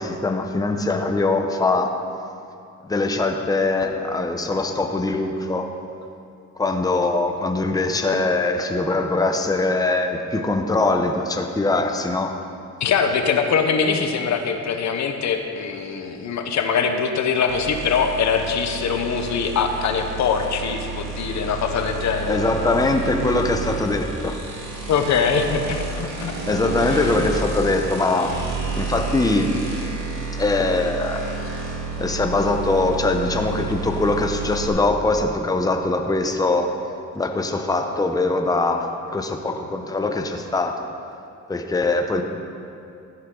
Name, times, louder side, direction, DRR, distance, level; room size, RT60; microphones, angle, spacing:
voice 1, 0.0-1.9 2.8-5.7 6.6-12.3 22.3-24.4 26.4-28.4 28.7-29.5 30.4-31.3 32.0-36.7 37.2-40.9 41.5-42.2, left 2 dB, 10° left, 4 dB, 0.8 m, -22 dB
voice 2, 12.8-22.4 24.9-26.3 26.9-27.0, left 6 dB, 65° left, 6 dB, 1.0 m, -22 dB
sound 1, 17.5-34.7, right 4 dB, 60° right, 3.1 m, -30 dB
14.0 x 9.8 x 3.9 m, 2.5 s
cardioid pair, 90°, 30 cm